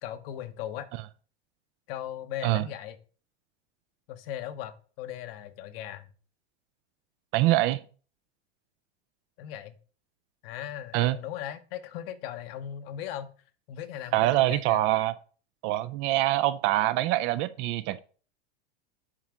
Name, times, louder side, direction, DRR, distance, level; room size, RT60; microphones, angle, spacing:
voice 1, 0.0-0.9 1.9-3.0 4.1-6.1 9.4-9.8 10.4-13.3 13.7-14.8, left 11 dB, 60° left, 1.0 m, -38 dB
voice 2, 7.3-7.8 10.9-11.2 14.1-15.1 15.6-18.0, right 15 dB, 35° right, 0.4 m, -24 dB
7.4 x 3.9 x 4.8 m
supercardioid pair, 130°, 33 cm